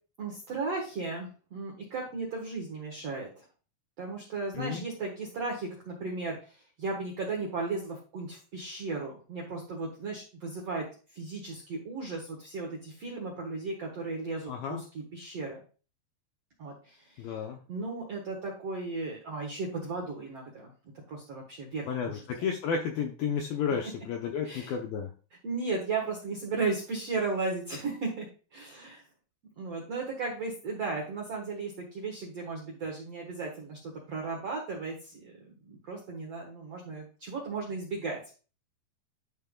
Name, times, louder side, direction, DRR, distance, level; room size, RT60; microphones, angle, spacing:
voice 1, 0.2-3.4 4.0-10.8 11.1-15.6 16.6-17.3 17.7-20.7 21.1-22.2 23.8-23.9 24.4-24.7 25.4-28.3 28.5-29.0 29.6-38.2, right 3 dB, 70° right, -1 dB, 1.5 m, -35 dB
voice 2, 4.5-4.9 14.5-14.8 17.2-17.6 21.9-25.1, left 6 dB, 80° left, 2 dB, 2.1 m, -32 dB
11.5 x 3.9 x 3.7 m, 0.36 s
omnidirectional pair, 5.1 m